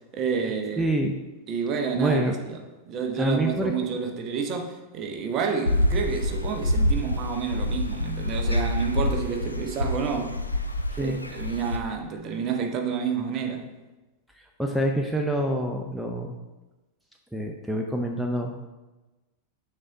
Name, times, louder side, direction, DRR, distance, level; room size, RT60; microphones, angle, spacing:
voice 1, 0.1-0.9 1.5-2.6 2.9-10.4 11.0-13.7, right 6 dB, 35° right, 5 dB, 0.9 m, -29 dB
voice 2, 0.8-1.1 1.9-2.4 3.2-3.7 10.9-11.2 14.6-16.4 17.3-18.5, right 1 dB, ahead, 2 dB, 0.5 m, -26 dB
sound 1, 5.7-11.8, left 1 dB, 85° left, 0.5 m, -26 dB
6.5 x 3.9 x 4.6 m, 1.1 s
figure-of-eight pair, 90°, 0 cm